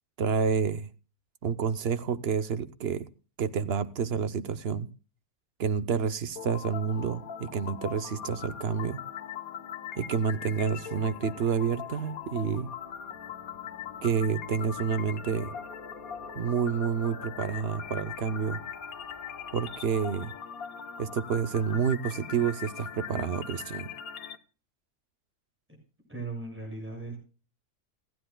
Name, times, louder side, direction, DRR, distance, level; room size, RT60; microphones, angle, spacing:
voice 1, 0.2-0.9 1.4-3.0 3.4-4.9 5.6-9.0 10.0-12.7 14.0-15.5 16.4-18.6 19.5-20.3 21.0-23.9, right 6 dB, 50° right, 0.8 m, -29 dB
sound 1, 6.4-24.4, left 8 dB, 70° left, 1.4 m, -41 dB
sound 2, 12.3-20.5, left 4 dB, 40° left, 1.0 m, -50 dB
voice 2, 26.1-27.2, right 3 dB, 5° right, 7.1 m, -37 dB
29.0 x 10.0 x 2.2 m
omnidirectional pair, 1.6 m